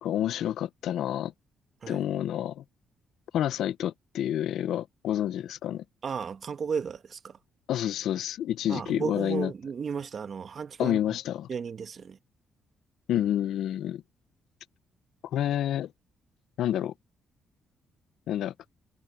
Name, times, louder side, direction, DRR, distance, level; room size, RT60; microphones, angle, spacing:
voice 1, 0.0-1.3 1.9-2.6 3.3-5.8 7.7-9.5 10.8-11.5 13.1-14.0 15.2-15.9 16.6-16.9 18.3-18.5, left 11 dB, 80° left, 0.8 m, -29 dB
voice 2, 6.0-7.4 8.7-11.0 11.5-12.2, right 6 dB, 50° right, 1.7 m, -34 dB
cardioid pair, 90°, 0 cm